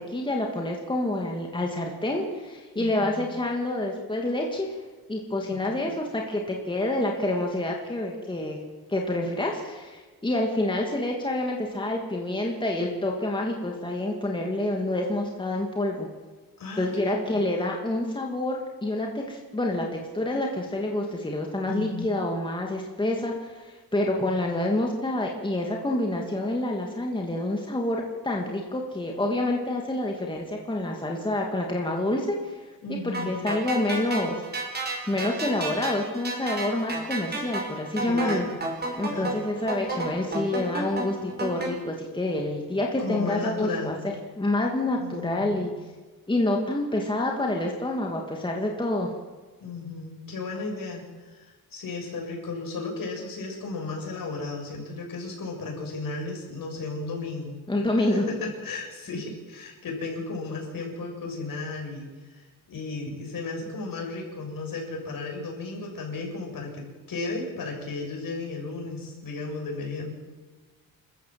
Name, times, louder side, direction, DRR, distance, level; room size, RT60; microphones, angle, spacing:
voice 1, 0.0-4.7 5.1-8.6 8.9-16.1 16.8-32.6 32.9-34.4 35.1-38.5 39.0-43.9 44.4-45.7 46.3-49.1 57.7-58.2, left 1 dB, 15° left, 0 dB, 2.6 m, -28 dB
voice 2, 2.7-3.2 5.5-5.8 16.6-17.5 21.7-22.1 32.8-33.4 38.0-38.6 39.1-39.4 43.0-44.0 45.0-45.7 49.6-51.0 51.3-57.5 58.1-70.1, left 3 dB, 65° left, 0 dB, 7.2 m, -34 dB
sound 1, 33.1-41.7, right 2 dB, 25° right, 5.5 m, -32 dB
28.5 x 14.5 x 7.8 m, 1.3 s
wide cardioid pair, 155°, 37 cm